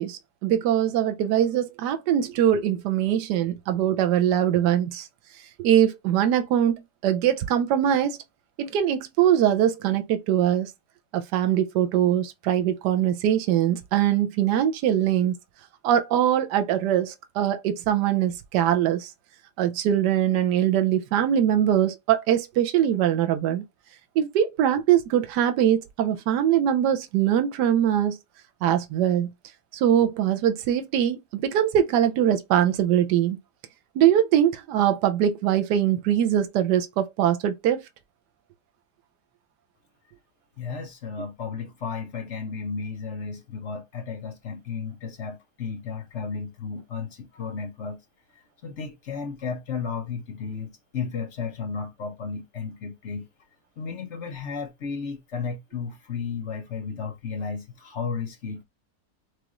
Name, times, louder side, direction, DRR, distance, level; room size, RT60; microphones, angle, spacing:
voice 1, 0.0-5.1 5.6-6.8 7.0-8.2 8.6-10.7 11.1-15.4 15.8-19.1 19.6-23.6 24.2-28.2 28.6-29.3 29.7-33.4 33.9-37.8, right 10 dB, 75° right, 1.3 m, -22 dB
voice 2, 40.6-48.0 48.3-53.3 53.8-58.6, left 5 dB, 55° left, 0.9 m, -33 dB
6.2 x 2.5 x 3.0 m
omnidirectional pair, 1.9 m